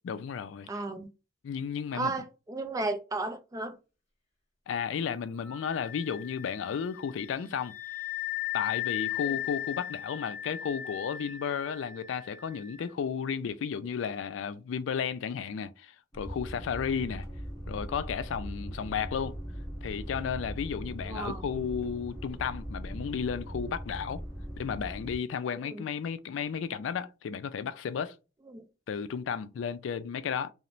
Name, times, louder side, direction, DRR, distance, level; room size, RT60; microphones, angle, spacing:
voice 1, 0.0-0.8 1.4-2.1 4.7-7.7 8.5-17.2 17.7-19.4 19.8-24.2 24.6-28.1 28.9-30.5, left 7 dB, 85° left, 0.3 m, -33 dB
voice 2, 0.7-1.1 1.9-3.7 21.1-21.4 25.6-25.8 28.5-28.7, right 3 dB, 20° right, 0.4 m, -34 dB
Wind instrument woodwind instrument, 5.4-12.8, left 14 dB, 35° left, 1.4 m, -37 dB
sound 1, 16.1-25.2, equal, 15° left, 1.3 m, -40 dB
2.9 x 2.0 x 2.5 m
head